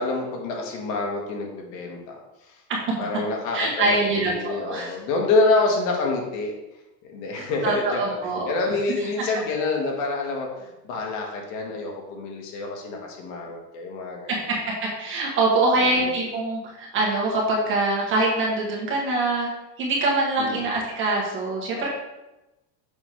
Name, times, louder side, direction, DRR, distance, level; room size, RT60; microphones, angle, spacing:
voice 1, 0.0-2.2 3.0-6.5 7.0-8.2 8.5-14.3 15.8-16.1 20.4-20.6 21.7-21.9, left 3 dB, 55° left, 0 dB, 1.8 m, -27 dB
voice 2, 3.5-5.0 7.3-8.5 14.3-14.6 14.8-19.5 19.8-21.9, right 2 dB, 25° right, -3 dB, 1.5 m, -24 dB
7.3 x 6.0 x 3.6 m, 0.98 s
supercardioid pair, 170°, 49 cm